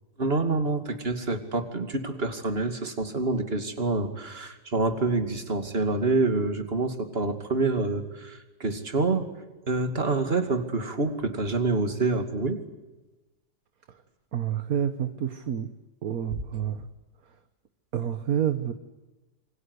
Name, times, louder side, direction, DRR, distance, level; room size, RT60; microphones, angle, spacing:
voice 1, 0.2-9.3 9.7-12.6, right 3 dB, 35° right, 7 dB, 2.7 m, -27 dB
voice 2, 14.3-15.7 16.0-16.8 17.9-18.7, right 9 dB, 60° right, 10 dB, 1.6 m, -28 dB
27.0 x 25.0 x 8.2 m, 1.1 s
omnidirectional pair, 1.8 m